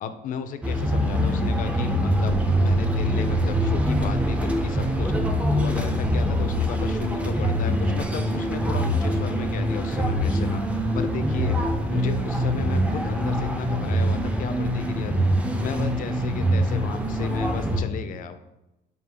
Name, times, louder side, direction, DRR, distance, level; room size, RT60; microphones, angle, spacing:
voice 1, 0.0-5.1 5.5-10.6 10.9-11.6 11.9-15.3 15.6-18.4, left 7 dB, 55° left, 9 dB, 0.4 m, -34 dB
sound 1, 0.6-17.8, equal, 10° right, 0.4 m, -24 dB
5.1 x 2.3 x 3.4 m, 0.94 s
cardioid pair, 110°, 17 cm